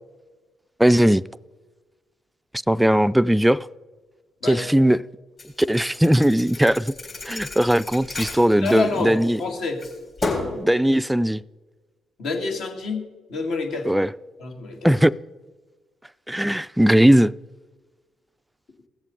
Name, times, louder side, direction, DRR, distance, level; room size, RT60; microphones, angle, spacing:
voice 1, 0.8-1.2 2.7-3.7 4.5-5.0 5.6-6.9 7.3-9.4 10.5-11.4 13.9-14.1 14.8-15.1 16.3-17.3, right 1 dB, 5° right, 0.3 m, -18 dB
Thump thud, 5.4-9.4 9.8-10.6, left 3 dB, 45° left, 3.7 m, -32 dB
voice 2, 8.6-9.9 12.2-13.0 13.3-14.0 14.4-14.8, left 3 dB, 70° left, 1.8 m, -27 dB
17.0 x 7.2 x 3.9 m
hypercardioid pair, 50°, 0 cm